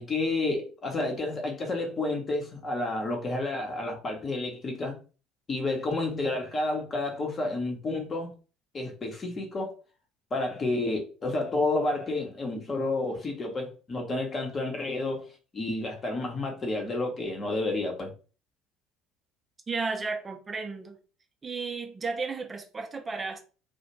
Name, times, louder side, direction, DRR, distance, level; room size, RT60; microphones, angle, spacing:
voice 1, 0.0-5.0 5.5-8.3 8.7-9.7 10.3-15.3 15.5-18.1, left 2 dB, 30° left, 0.8 m, -30 dB
voice 2, 19.7-21.0 21.4-23.4, right 4 dB, 25° right, 0.5 m, -33 dB
2.4 x 2.1 x 3.0 m
figure-of-eight pair, 60°, 0 cm